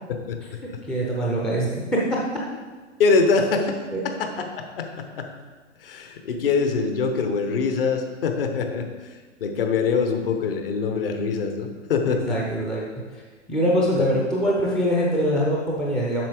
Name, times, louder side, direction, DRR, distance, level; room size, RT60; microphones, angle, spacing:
voice 1, 0.6-2.2 3.9-4.0 12.3-12.9 13.1-13.2 13.5-16.3, equal, ahead, -4 dB, 0.5 m, -23 dB
voice 2, 3.0-3.8 4.0-5.3 5.8-8.9 9.4-12.4 14.0-14.1, left 4 dB, 50° left, 5 dB, 1.1 m, -24 dB
7.5 x 6.0 x 4.9 m, 1.4 s
figure-of-eight pair, 115°, 37 cm